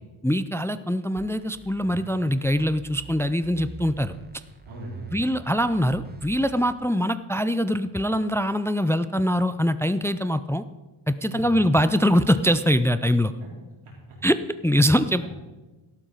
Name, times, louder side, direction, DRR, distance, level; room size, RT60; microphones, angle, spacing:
voice 1, 0.2-4.1 5.1-10.6 11.1-13.3 14.2-15.3, equal, 5° left, 13 dB, 0.3 m, -23 dB
sound 1, 1.2-6.7, right 3 dB, 20° right, 1.1 m, -46 dB
voice 2, 4.6-5.3 11.3-11.5 13.4-13.5 13.8-14.2 15.2-15.3, right 1 dB, 80° right, -5 dB, 4.0 m, -40 dB
13.0 x 12.0 x 3.9 m, 1.2 s
cardioid pair, 85°, 50 cm